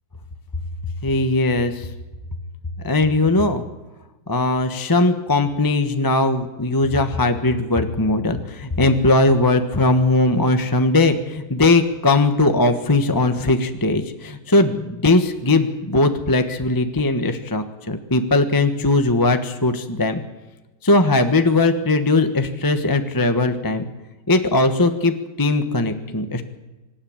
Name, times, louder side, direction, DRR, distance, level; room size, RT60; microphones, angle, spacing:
voice 1, 1.0-1.9 2.8-3.6 4.3-20.2 20.8-23.9 24.3-26.4, left 2 dB, 15° left, 7 dB, 1.1 m, -19 dB
26.0 x 13.0 x 8.9 m, 1.1 s
omnidirectional pair, 2.2 m